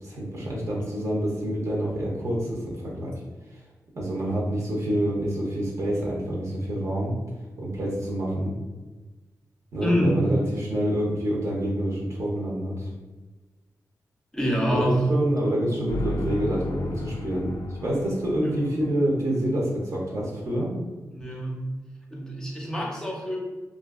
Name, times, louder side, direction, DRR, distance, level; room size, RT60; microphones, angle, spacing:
voice 1, 0.0-3.1 3.5-3.6 3.9-7.1 7.6-8.5 9.7-12.9 14.7-17.5 17.8-20.7, right 1 dB, 55° right, -4 dB, 0.7 m, -27 dB
voice 2, 9.8-10.3 14.3-15.1 18.4-18.6 21.1-21.7 22.1-23.4, equal, 10° left, -3 dB, 0.5 m, -26 dB
sound 1, 15.9-20.0, left 2 dB, 75° left, 0.3 m, -35 dB
2.4 x 2.4 x 2.4 m, 1.3 s
wide cardioid pair, 115°, 6 cm